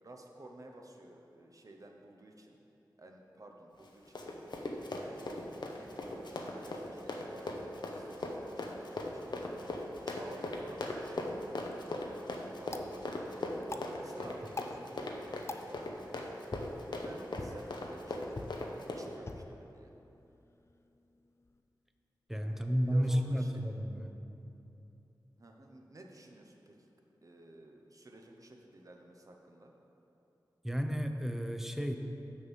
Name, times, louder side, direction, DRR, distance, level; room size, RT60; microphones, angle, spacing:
voice 1, 0.0-2.6 3.0-4.4 4.9-9.3 10.0-11.7 12.6-13.1 13.6-15.9 16.9-18.4 18.7-19.9 22.3-23.6 25.4-26.9 27.2-29.7, right 1 dB, 45° right, 2 dB, 0.9 m, -52 dB
Run, 3.8-19.1, left 2 dB, 70° left, 0.8 m, -39 dB
sound 1, 12.7-21.6, left 2 dB, 35° left, 0.5 m, -48 dB
voice 2, 22.3-24.1 30.6-32.0, equal, 5° right, 5 dB, 0.6 m, -32 dB
6.6 x 5.4 x 7.2 m, 2.9 s
wide cardioid pair, 80°, 8 cm